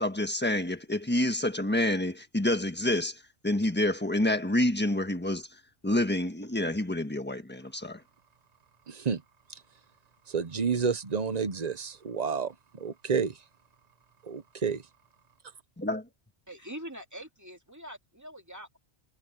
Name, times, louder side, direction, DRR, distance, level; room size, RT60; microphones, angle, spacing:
voice 1, 0.0-5.5 5.8-8.0 15.8-16.0, left 1 dB, 10° left, 1.4 m, -28 dB
voice 2, 8.9-9.2 10.3-12.5 12.8-13.3 14.3-14.8, right 5 dB, 40° right, 1.0 m, -29 dB
voice 3, 16.5-18.8, equal, 15° right, 2.3 m, -44 dB
omnidirectional pair, 1.1 m